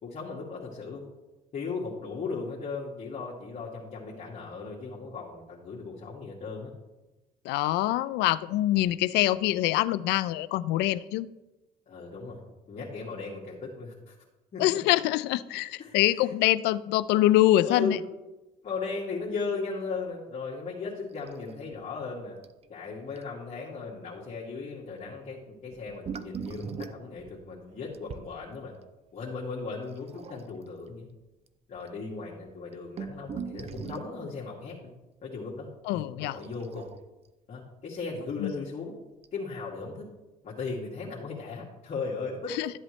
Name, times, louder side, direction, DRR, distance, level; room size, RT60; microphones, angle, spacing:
voice 1, 0.0-1.0 1.5-6.7 11.9-12.4 12.7-14.1 14.5-14.6 15.8-15.9 17.6-18.0 18.6-22.4 22.7-28.7 29.1-31.1 31.7-34.9 35.2-36.9 37.5-39.0 39.3-40.1 40.4-42.6, left 4 dB, 45° left, -5 dB, 2.1 m, -37 dB
voice 2, 7.4-11.3 14.6-18.0 35.9-36.4 38.4-38.5 42.6-42.7, left 15 dB, 85° left, 17 dB, 0.4 m, -24 dB
sound 1, 21.2-21.8 22.0-22.1 22.4-22.6 23.2-23.3 25.7-28.3 30.0-30.7 31.5-31.6 31.8-31.9 32.5-34.2 36.4-37.3 38.5-38.6 39.2-39.3, right 6 dB, 35° right, 0.6 m, -40 dB
12.0 x 8.0 x 3.2 m, 1.0 s
cardioid pair, 110°, 17 cm